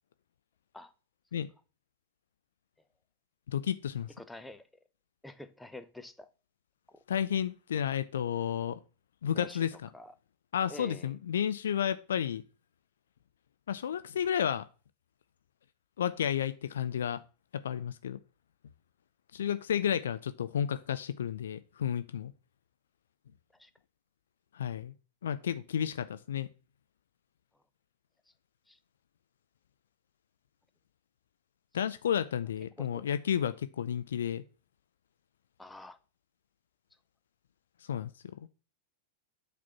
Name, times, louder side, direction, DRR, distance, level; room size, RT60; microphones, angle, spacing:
voice 1, 3.5-4.1 7.1-8.8 9.2-9.9 10.5-12.4 13.7-14.6 16.0-17.2 17.5-18.2 19.3-22.3 24.5-24.9 25.2-26.5 31.7-34.4 37.9-38.1 38.4-38.5, left 9 dB, 65° left, 0.4 m, -32 dB
voice 2, 4.2-4.7 5.2-6.3 6.9-7.0 9.3-10.1 10.7-11.2 23.5-23.7 28.3-28.4 28.7-28.8 32.8-33.1 35.6-36.0, left 2 dB, 5° left, 0.7 m, -48 dB
8.4 x 4.2 x 5.9 m
figure-of-eight pair, 90°, 0 cm